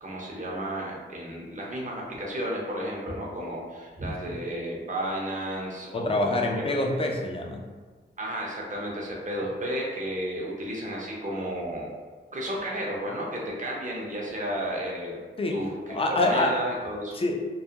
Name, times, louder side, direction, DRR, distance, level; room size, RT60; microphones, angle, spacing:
voice 1, 0.0-6.6 6.9-7.0 8.2-11.9 12.3-15.2 15.5-17.1, equal, 40° right, -3 dB, 0.7 m, -33 dB
voice 2, 5.9-7.6 15.4-15.6 15.9-16.5 17.1-17.4, left 2 dB, 25° left, 2 dB, 0.4 m, -26 dB
2.3 x 2.1 x 2.7 m, 1.4 s
cardioid pair, 65°, 21 cm